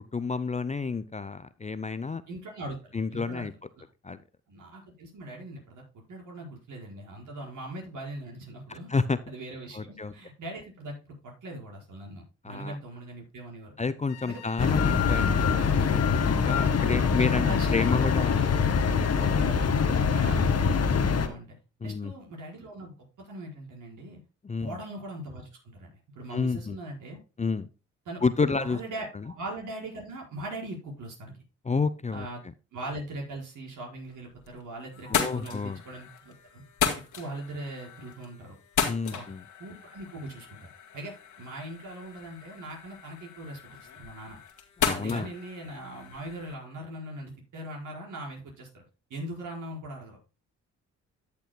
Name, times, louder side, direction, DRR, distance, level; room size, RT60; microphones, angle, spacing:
voice 1, 0.1-2.2 2.9-3.5 4.0-4.2 8.7-9.2 9.7-10.1 12.4-12.8 13.8-17.5 17.7-18.5 19.2-19.4 21.8-22.1 24.4-24.8 26.3-26.8 27.4-27.7 28.2-28.8 29.2-29.3 31.6-32.3 35.1-35.8 38.9-39.4 44.8-45.3, left 4 dB, 20° left, 14 dB, 0.6 m, -30 dB
voice 2, 2.3-3.5 3.8-3.9 4.5-8.9 9.3-11.0 11.2-13.9 14.3-14.4 17.2-17.9 18.3-18.5 19.2-21.6 21.8-24.2 24.6-27.2 28.0-28.2 28.5-31.4 32.1-32.4 32.7-36.6 37.1-38.6 39.1-39.2 39.6-40.7 40.9-43.6 44.0-44.4 44.9-48.8 49.1-50.2, right 1 dB, 65° right, 0 dB, 5.0 m, -40 dB
sound 1, 14.1-19.4, left 11 dB, 90° left, 1.0 m, -37 dB
sound 2, 14.6-21.3, left 5 dB, 45° left, 1.6 m, -24 dB
sound 3, 34.1-34.6 34.9-46.5, left 7 dB, 65° left, 2.1 m, -35 dB
13.5 x 6.8 x 2.2 m, 0.32 s
supercardioid pair, 55°, 33 cm